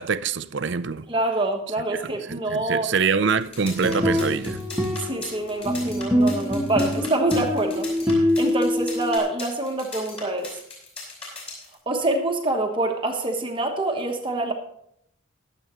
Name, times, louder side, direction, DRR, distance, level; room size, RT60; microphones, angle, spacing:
voice 1, 0.0-1.1 1.9-4.6, right 5 dB, 55° right, 0.5 m, -25 dB
voice 2, 1.1-2.9 5.0-10.6 11.9-14.5, right 2 dB, 25° right, 1.1 m, -26 dB
sound 1, 3.4-11.7, left 3 dB, 25° left, 5.5 m, -38 dB
sound 2, 3.6-9.2, left 1 dB, 5° right, 1.4 m, -24 dB
22.0 x 7.9 x 3.1 m
head